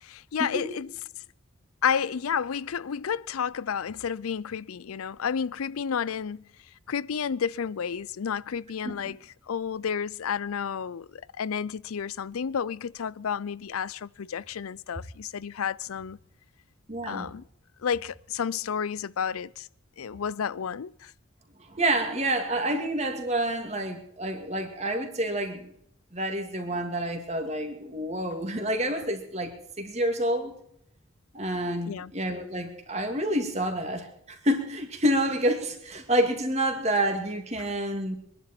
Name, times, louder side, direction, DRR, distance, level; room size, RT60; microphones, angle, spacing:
voice 1, 0.0-0.9 1.8-6.4 6.9-16.2 17.0-17.4 17.8-19.7 20.0-21.1 31.9-32.1, left 7 dB, 85° left, 0.5 m, -31 dB
voice 2, 16.9-17.3 21.7-25.7 26.1-30.5 31.3-38.2, right 1 dB, 30° right, 2.4 m, -28 dB
24.5 x 11.0 x 4.5 m
head